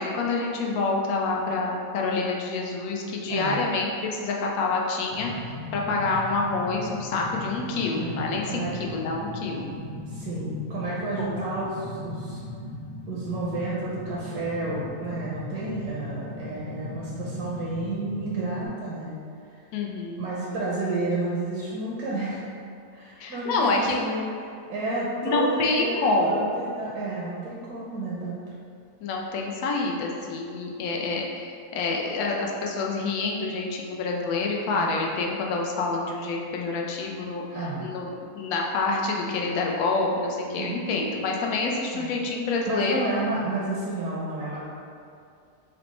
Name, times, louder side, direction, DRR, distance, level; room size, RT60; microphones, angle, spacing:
voice 1, 0.0-9.7 11.2-11.3 19.7-20.3 23.2-24.0 25.2-26.5 29.0-43.0, left 3 dB, 70° left, 0 dB, 1.0 m, -27 dB
voice 2, 3.3-3.6 7.9-8.7 10.1-12.4 13.1-19.2 20.2-22.6 22.9-28.4 34.7-34.9 37.5-37.9 40.6-40.9 41.9-42.1 42.6-44.7, right 2 dB, 80° right, -6 dB, 1.2 m, -31 dB
sound 1, 5.1-18.7, left 2 dB, 90° left, 0.4 m, -37 dB
6.0 x 2.0 x 3.0 m, 2.4 s
omnidirectional pair, 1.7 m